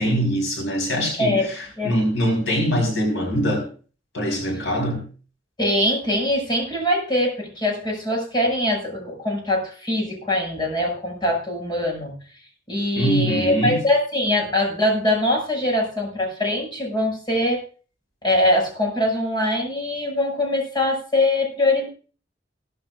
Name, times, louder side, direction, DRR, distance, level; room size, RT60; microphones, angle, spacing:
voice 1, 0.0-3.6 4.1-5.0 12.9-13.8, equal, 85° left, 4.6 m, -23 dB
voice 2, 5.6-12.2 12.7-17.6 18.2-21.9, left 1 dB, 25° left, 6.4 m, -22 dB
17.5 x 13.0 x 2.5 m
head